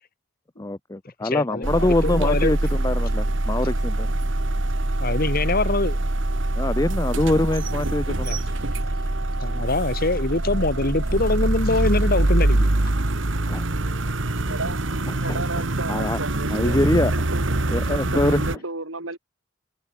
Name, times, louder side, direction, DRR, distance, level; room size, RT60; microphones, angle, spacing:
voice 1, 0.6-4.1 6.6-8.4 13.5-13.6 15.3-15.4 15.9-16.2 16.5-17.1 17.7-18.4, left 2 dB, 15° left, 0.6 m, -24 dB
voice 2, 1.2-2.6 5.0-6.0 8.2-8.4 9.4-12.9, left 2 dB, 50° left, 1.8 m, -24 dB
sound 1, 1.6-18.6, right 1 dB, 65° right, 1.7 m, -24 dB
voice 3, 14.5-14.8 15.2-17.5 17.8-19.2, right 2 dB, 85° right, 6.1 m, -33 dB
head